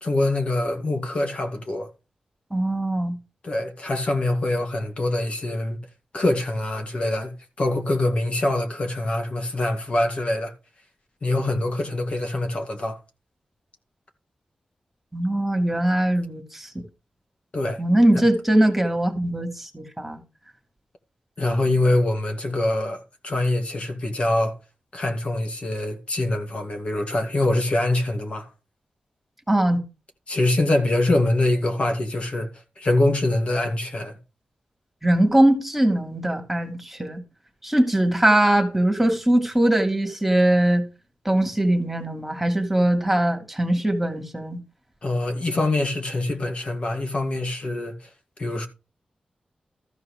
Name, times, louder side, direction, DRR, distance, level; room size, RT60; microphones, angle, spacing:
voice 1, 0.0-1.9 3.4-5.8 6.1-7.3 7.6-10.5 11.2-13.0 17.5-17.8 21.4-24.6 24.9-28.5 30.3-32.5 32.8-34.2 45.0-47.9 48.4-48.7, left 2 dB, 50° left, 2.2 m, -24 dB
voice 2, 2.5-3.2 15.1-16.8 17.8-20.2 29.5-29.8 35.0-37.2 37.6-40.9 41.2-44.6, right 1 dB, 5° right, 2.6 m, -21 dB
14.0 x 4.8 x 6.4 m
wide cardioid pair, 110°, 3 cm